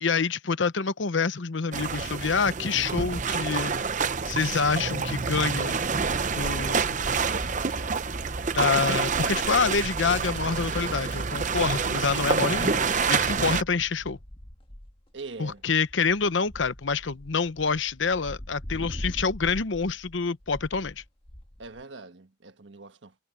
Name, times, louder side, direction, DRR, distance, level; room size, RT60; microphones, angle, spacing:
voice 1, 0.0-3.7 4.2-5.8 6.4-7.0 8.6-14.2 15.4-21.0, left 5 dB, 80° left, 0.9 m, -27 dB
sound 1, 1.7-13.6, right 5 dB, 40° right, 0.8 m, -27 dB
sound 2, 5.8-21.8, equal, 30° left, 1.6 m, -44 dB
voice 2, 15.1-15.6 21.6-23.1, right 3 dB, 75° right, 1.5 m, -42 dB
head